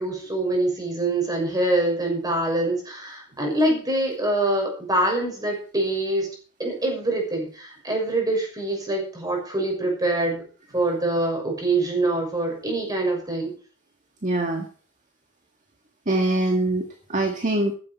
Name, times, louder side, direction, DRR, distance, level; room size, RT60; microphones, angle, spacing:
voice 1, 0.0-6.3 6.6-10.4 10.7-13.5, right 2 dB, 20° right, 1 dB, 6.5 m, -24 dB
voice 2, 14.2-14.7 16.1-17.7, right 2 dB, 35° right, 4 dB, 1.8 m, -23 dB
14.5 x 12.5 x 4.6 m, 0.40 s
head